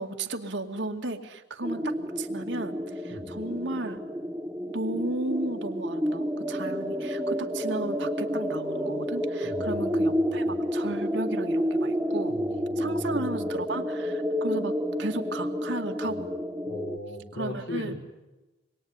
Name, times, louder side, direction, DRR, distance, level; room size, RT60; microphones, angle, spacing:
voice 1, 0.0-4.0 4.7-12.3 12.8-16.3 17.3-17.9, right 2 dB, 65° right, 4 dB, 2.3 m, -34 dB
sound 1, 1.6-17.0, equal, 10° right, 1.4 m, -30 dB
voice 2, 9.4-10.6 12.3-13.5 16.7-18.0, left 1 dB, 70° left, 1 dB, 5.6 m, -39 dB
27.0 x 22.0 x 9.8 m, 1.1 s
head